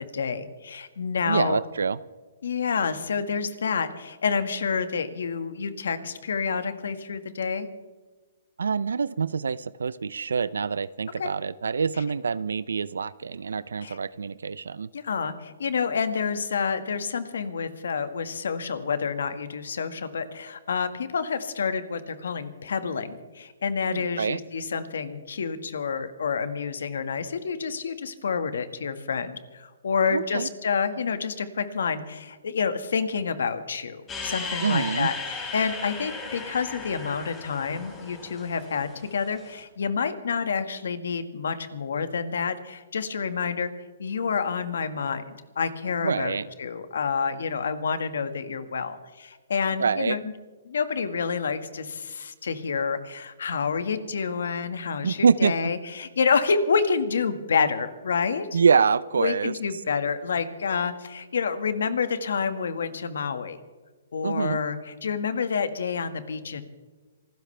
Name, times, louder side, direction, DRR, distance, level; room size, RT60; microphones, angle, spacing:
voice 1, 0.1-1.6 2.4-7.7 11.2-11.3 13.8-14.0 14.9-43.7 44.0-50.3 50.6-58.6 59.2-63.6 64.1-66.6, left 5 dB, 80° left, 10 dB, 1.7 m, -28 dB
voice 2, 1.3-2.0 8.6-14.9 23.9-24.4 30.1-30.5 34.6-35.1 46.0-46.5 49.8-50.2 55.0-55.7 58.5-59.5 64.2-64.6, right 5 dB, 90° right, 18 dB, 0.5 m, -25 dB
sound 1, 34.1-39.5, left 4 dB, 15° left, 3.8 m, -36 dB
27.0 x 13.5 x 3.4 m, 1.3 s
hypercardioid pair, 150°, 0 cm